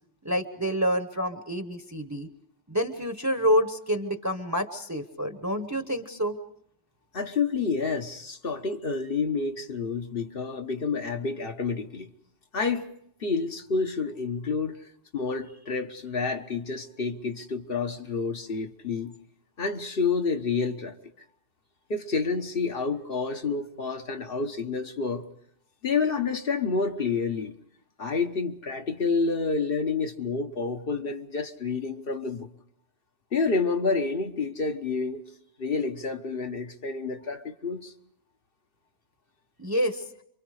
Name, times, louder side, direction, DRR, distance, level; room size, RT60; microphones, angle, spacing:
voice 1, 0.2-2.3 2.7-6.3 39.6-40.0, equal, 15° right, 1.0 m, -27 dB
voice 2, 7.1-12.1 12.5-12.9 13.2-14.8 15.1-19.1 19.6-21.0 21.9-25.2 25.8-27.6 28.0-32.5 33.3-35.2 35.6-37.9, left 4 dB, 55° left, 1.4 m, -29 dB
28.0 x 24.0 x 4.9 m
omnidirectional pair, 1.1 m